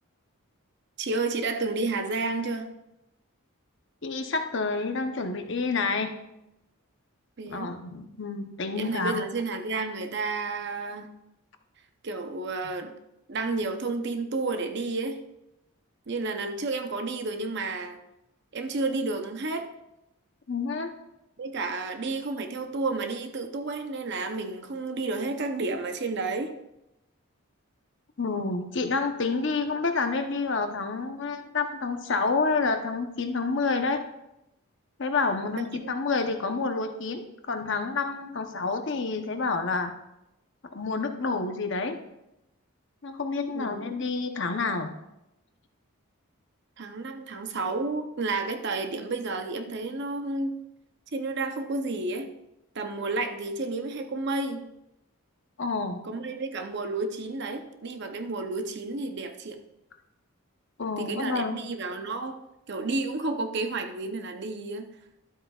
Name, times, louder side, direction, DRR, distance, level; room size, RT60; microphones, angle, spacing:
voice 1, 1.0-2.7 7.4-7.8 8.8-11.1 12.0-13.0 13.3-15.2 16.1-18.0 18.5-19.7 21.4-26.5 35.5-35.9 43.5-43.9 46.8-50.6 51.1-52.3 52.7-54.6 56.0-59.6 61.0-62.4 62.7-64.9, right 3 dB, 50° right, 6 dB, 0.7 m, -31 dB
voice 2, 4.0-6.2 7.4-9.2 20.5-20.9 28.2-34.0 35.0-39.9 40.7-42.0 43.0-44.9 55.6-56.0 60.8-61.6, left 4 dB, 55° left, 6 dB, 0.8 m, -28 dB
12.5 x 7.9 x 2.4 m, 0.89 s
head